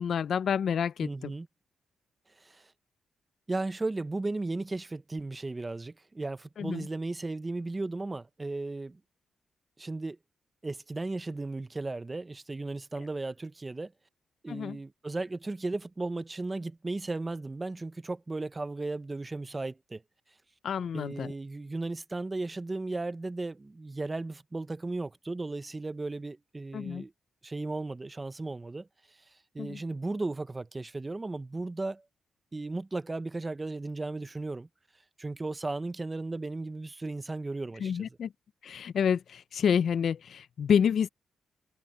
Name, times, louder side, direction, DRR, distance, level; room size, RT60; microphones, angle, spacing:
voice 1, 0.0-1.3 6.6-6.9 14.5-14.8 20.6-21.3 26.7-27.0 29.6-29.8 37.8-38.3 38.6-41.1, left 7 dB, 60° left, 0.4 m, -28 dB
voice 2, 1.0-1.5 2.4-2.7 3.5-9.0 9.8-10.2 10.6-13.9 14.4-20.0 20.9-27.1 27.4-29.2 29.5-32.0 32.5-34.7 35.2-38.2, right 2 dB, 20° right, 0.7 m, -35 dB
cardioid pair, 125°, 0 cm